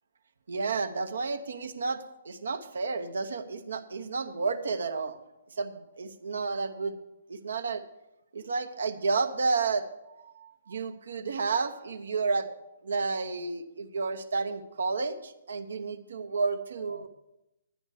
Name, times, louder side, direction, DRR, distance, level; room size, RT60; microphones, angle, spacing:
voice 1, 0.5-5.2 5.6-7.0 7.3-7.8 8.3-9.9 10.2-12.5 12.8-17.1, right 4 dB, 70° right, 8 dB, 0.9 m, -31 dB
11.5 x 9.8 x 4.8 m, 0.89 s
figure-of-eight pair, 130°, 0 cm